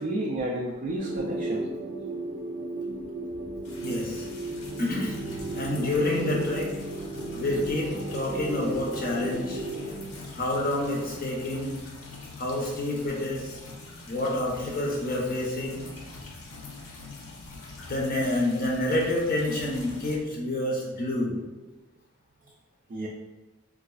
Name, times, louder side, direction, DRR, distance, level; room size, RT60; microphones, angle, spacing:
voice 1, 0.0-1.6 22.9-23.1, right 1 dB, 40° right, -2 dB, 0.3 m, -31 dB
sound 1, 1.0-10.0, right 2 dB, 85° right, 0.6 m, -34 dB
sound 2, 3.6-20.2, left 3 dB, 90° left, 0.6 m, -44 dB
voice 2, 3.8-4.3 4.8-5.1 5.5-6.7 7.3-9.6 10.3-11.8 12.4-13.6 14.1-15.9 17.9-21.3, left 1 dB, 45° left, -2 dB, 0.5 m, -28 dB
3.8 x 2.4 x 2.3 m, 1.1 s
head